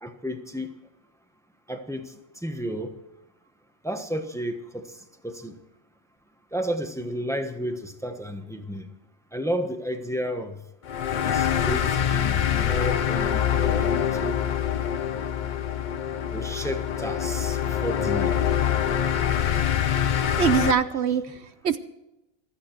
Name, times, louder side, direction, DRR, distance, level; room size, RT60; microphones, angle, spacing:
voice 1, 0.0-0.7 1.7-2.1 2.4-2.9 3.8-4.8 5.2-5.5 6.5-8.9 9.3-10.6 11.2-14.4 16.3-18.4, equal, 5° left, 6 dB, 1.1 m, -32 dB
sound 1, 10.9-20.7, left 9 dB, 45° left, 0.7 m, -25 dB
voice 2, 20.4-21.8, right 8 dB, 65° right, 11 dB, 1.0 m, -24 dB
16.0 x 13.5 x 4.6 m, 0.89 s
omnidirectional pair, 1.2 m